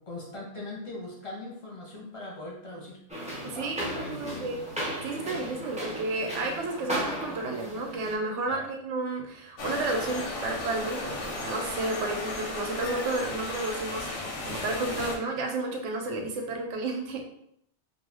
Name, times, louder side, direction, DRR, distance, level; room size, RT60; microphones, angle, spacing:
voice 1, 0.0-3.0 3.5-4.5 8.5-8.7, left 2 dB, 35° left, -3 dB, 0.6 m, -41 dB
sound 1, 3.1-8.2, equal, 10° right, 0.4 m, -35 dB
voice 2, 3.4-4.7 5.0-14.1 14.4-17.2, right 2 dB, 85° right, 2 dB, 0.9 m, -32 dB
sound 2, 9.6-15.2, left 2 dB, 90° left, 1.0 m, -35 dB
2.4 x 2.1 x 3.3 m, 0.72 s
omnidirectional pair, 1.2 m